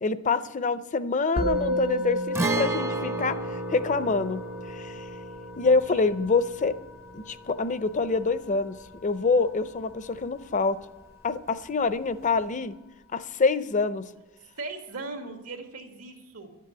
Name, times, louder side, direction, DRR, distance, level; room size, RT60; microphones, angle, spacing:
voice 1, 0.0-4.4 4.7-5.0 5.6-6.7 7.1-8.7 9.0-10.8 11.2-12.7 13.1-14.1, left 4 dB, 35° left, 13 dB, 0.5 m, -26 dB
Musical instrument, 1.4-10.9, left 1 dB, 90° left, 2.6 m, -34 dB
Guitar, 2.3-10.0 10.2-10.3 12.3-12.5, right 3 dB, 10° right, 0.5 m, -34 dB
voice 2, 5.8-6.2 14.6-16.5, right 3 dB, 85° right, 3 dB, 2.1 m, -39 dB
12.0 x 7.6 x 9.5 m, 1.0 s
head